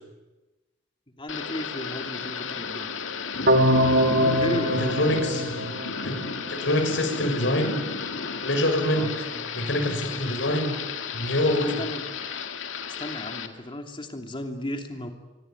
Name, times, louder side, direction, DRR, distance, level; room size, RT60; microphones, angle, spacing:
voice 1, 1.2-2.9 4.3-5.2 9.0-9.2 10.1-10.6 11.8-12.1 13.0-15.1, left 1 dB, 25° left, 4 dB, 2.8 m, -34 dB
Thunder / Rain, 1.3-13.5, left 5 dB, 85° left, 2.0 m, -33 dB
sound 1, 3.5-6.4, equal, 60° right, 2.1 m, -23 dB
voice 2, 4.4-5.5 6.0-6.2 6.4-7.8 8.4-9.3 9.5-10.7 11.1-11.8, left 1 dB, 70° left, 5 dB, 6.7 m, -25 dB
26.0 x 24.0 x 9.1 m, 1.1 s
head